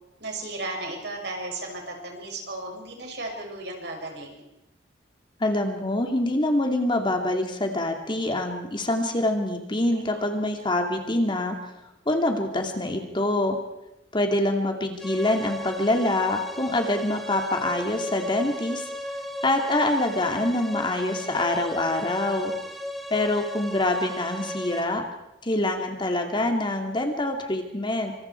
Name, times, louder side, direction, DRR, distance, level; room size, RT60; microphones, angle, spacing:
voice 1, 0.2-4.5 9.9-10.0 21.2-21.3 22.3-22.5, right 2 dB, 65° right, 1 dB, 6.7 m, -35 dB
voice 2, 5.4-11.6 12.1-13.6 14.1-18.9 19.4-22.5 23.1-25.0 25.4-28.1, left 1 dB, 25° left, 4 dB, 2.7 m, -25 dB
sound 1, 15.0-24.8, left 1 dB, ahead, 3.5 m, -36 dB
26.5 x 26.0 x 4.7 m, 0.92 s
head